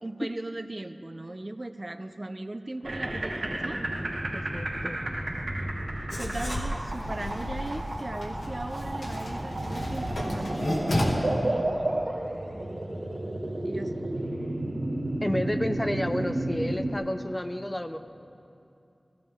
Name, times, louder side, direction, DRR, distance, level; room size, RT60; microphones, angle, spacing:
voice 1, 0.0-3.8 6.0-11.8 13.6-14.1, right 1 dB, 40° right, 8 dB, 0.6 m, -38 dB
sound 1, 2.8-16.9, right 1 dB, 80° right, 1.7 m, -32 dB
voice 2, 4.3-5.0 15.2-18.0, left 1 dB, 20° left, 8 dB, 0.7 m, -31 dB
Writing, 6.1-11.0, left 1 dB, 80° left, 2.1 m, -33 dB
16.5 x 16.0 x 3.6 m, 2.7 s
wide cardioid pair, 50°, 0 cm